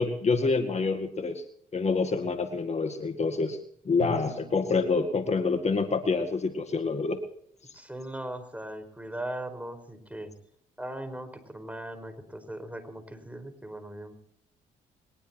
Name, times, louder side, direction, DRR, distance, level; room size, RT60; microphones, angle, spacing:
voice 1, 0.0-1.4 1.7-3.6 3.9-7.2, left 4 dB, 40° left, 7 dB, 2.0 m, -27 dB
Drum, 4.0-5.9, right 2 dB, 75° right, 5.1 m, -41 dB
voice 2, 7.7-10.3 10.8-14.2, right 1 dB, 10° right, 9 dB, 4.9 m, -39 dB
22.0 x 20.0 x 2.9 m, 0.68 s
supercardioid pair, 60°, 18 cm